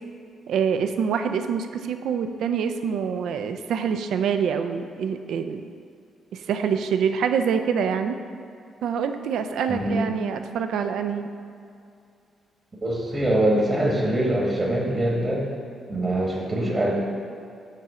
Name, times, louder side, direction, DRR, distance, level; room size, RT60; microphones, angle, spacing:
voice 1, 0.5-5.6 6.3-8.2 8.8-11.3, right 7 dB, 70° right, 8 dB, 0.3 m, -25 dB
voice 2, 9.7-10.0 12.8-15.5 15.9-16.9, right 1 dB, 40° right, -3 dB, 1.3 m, -23 dB
6.6 x 3.1 x 4.8 m, 2.4 s
hypercardioid pair, 45°, 0 cm